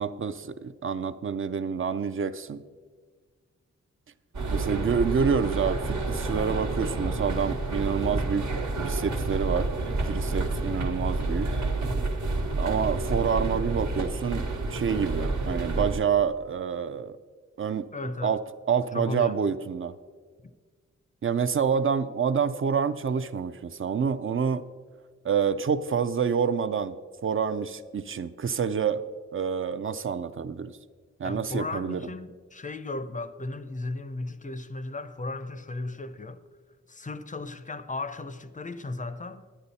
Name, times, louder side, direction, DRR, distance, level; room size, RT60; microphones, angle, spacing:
voice 1, 0.0-2.6 4.5-8.5 8.8-9.7 10.0-11.5 12.6-17.2 17.6-17.9 18.2-20.0 21.2-24.6 25.2-26.9 27.2-29.0 29.3-30.8 31.2-32.0, right 6 dB, 45° right, 0.5 m, -27 dB
sound 1, 4.3-16.0, right 2 dB, 75° right, 1.4 m, -29 dB
voice 2, 17.9-18.3 18.9-19.4 20.4-20.5 31.2-36.4 36.9-39.4, left 2 dB, 25° left, 0.5 m, -35 dB
10.0 x 9.7 x 4.1 m
wide cardioid pair, 100°, 29 cm